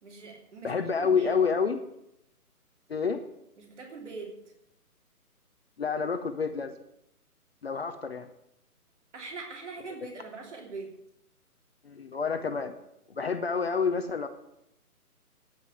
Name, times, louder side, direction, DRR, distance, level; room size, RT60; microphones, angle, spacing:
voice 1, 0.0-1.3 3.6-4.3 9.1-10.9, right 4 dB, 50° right, 0 dB, 3.1 m, -42 dB
voice 2, 0.6-1.8 2.9-3.2 5.8-6.7 7.6-8.3 11.8-12.7 13.1-14.3, left 5 dB, 40° left, 8 dB, 0.8 m, -28 dB
9.7 x 6.8 x 9.1 m, 0.80 s
hypercardioid pair, 165°, 46 cm